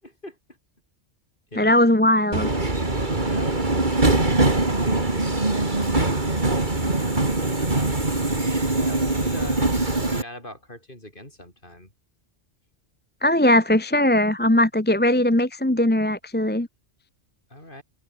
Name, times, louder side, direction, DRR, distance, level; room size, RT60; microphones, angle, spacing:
voice 1, 0.0-0.4 1.5-1.7 3.2-3.6 7.6-8.1 8.8-11.9 17.5-17.8, left 1 dB, 45° left, 7.3 m, -41 dB
voice 2, 1.6-2.5 13.2-16.7, left 1 dB, 10° left, 1.1 m, -19 dB
Subway metro underground, 2.3-10.2, right 2 dB, 40° right, 3.4 m, -22 dB
omnidirectional pair, 1.3 m